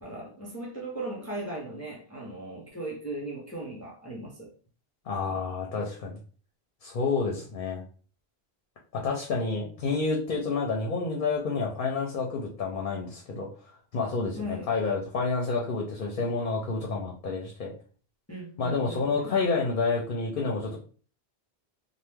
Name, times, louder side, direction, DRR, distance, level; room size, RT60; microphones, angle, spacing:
voice 1, 0.0-4.5 14.4-14.7 18.3-19.4, right 1 dB, 20° left, -3 dB, 0.5 m, -38 dB
voice 2, 5.1-6.2 6.8-7.8 8.9-13.5 13.9-17.7 18.6-20.8, left 4 dB, 60° left, 0 dB, 0.7 m, -29 dB
2.9 x 2.2 x 3.4 m, 0.41 s
omnidirectional pair, 1.1 m